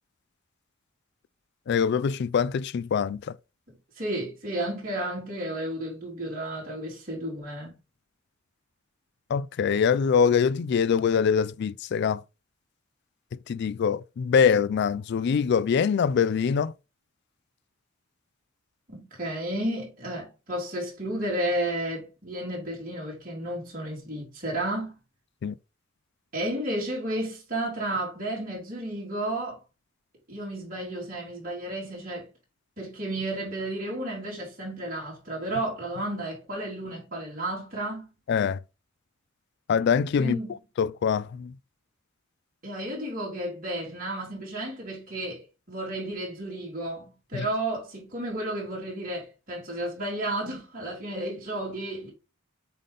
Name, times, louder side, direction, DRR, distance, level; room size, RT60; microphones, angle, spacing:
voice 1, 1.7-3.4 9.3-12.2 13.5-16.7 25.4-25.5 38.3-38.6 39.7-40.4 40.8-41.6 47.3-47.5, left 6 dB, 55° left, 0.3 m, -24 dB
voice 2, 4.0-7.7 18.9-24.9 26.3-29.6 30.3-32.3 32.8-38.0 40.2-40.5 42.6-45.4 45.7-52.1, right 1 dB, 40° right, 3.1 m, -32 dB
7.5 x 3.9 x 3.6 m
head